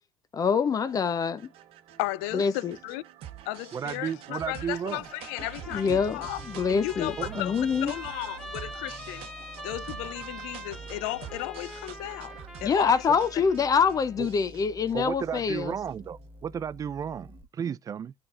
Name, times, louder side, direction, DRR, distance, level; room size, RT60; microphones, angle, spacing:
voice 1, 0.3-1.5 2.3-2.8 5.7-7.9 12.6-15.7, left 6 dB, 35° left, 0.6 m, -25 dB
sound 1, 0.5-16.1, right 10 dB, 65° right, 0.9 m, -46 dB
voice 2, 2.0-3.0 3.5-6.4 6.7-7.6 7.8-9.3 9.6-12.3 12.6-13.0, left 18 dB, 80° left, 0.4 m, -35 dB
voice 3, 3.7-5.1 7.2-7.4 14.2-14.3 14.9-18.1, right 8 dB, 35° right, 0.4 m, -33 dB
Trumpet, 5.0-14.2, equal, 5° left, 2.0 m, -44 dB
sound 2, 6.0-17.4, left 1 dB, 20° right, 1.1 m, -50 dB
9.5 x 4.4 x 2.4 m
supercardioid pair, 80°, 10 cm